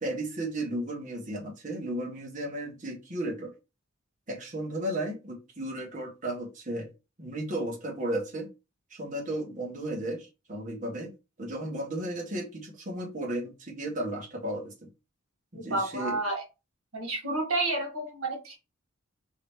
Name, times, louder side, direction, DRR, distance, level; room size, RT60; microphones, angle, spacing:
voice 1, 0.0-3.5 4.3-6.9 7.2-8.5 8.9-11.1 11.4-14.7 15.5-16.2, right 1 dB, 35° right, 1.0 m, -34 dB
voice 2, 15.5-16.4 16.9-18.6, right 2 dB, 80° right, 1.4 m, -30 dB
3.8 x 3.1 x 3.2 m
head